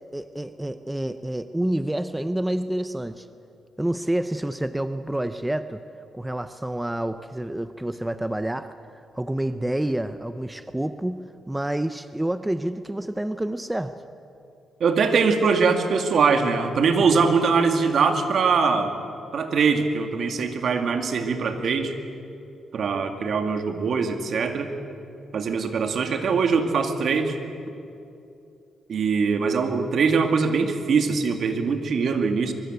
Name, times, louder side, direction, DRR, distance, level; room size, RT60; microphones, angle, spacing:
voice 1, 0.0-3.3 3.8-5.8 6.1-8.7 9.1-13.9, right 1 dB, 10° right, 10 dB, 0.7 m, -28 dB
voice 2, 14.8-18.9 19.3-21.9 22.7-24.7 25.3-27.4 28.9-32.5, right 5 dB, 60° right, 6 dB, 2.4 m, -22 dB
23.5 x 23.5 x 8.1 m, 2.6 s
cardioid pair, 110°, 0 cm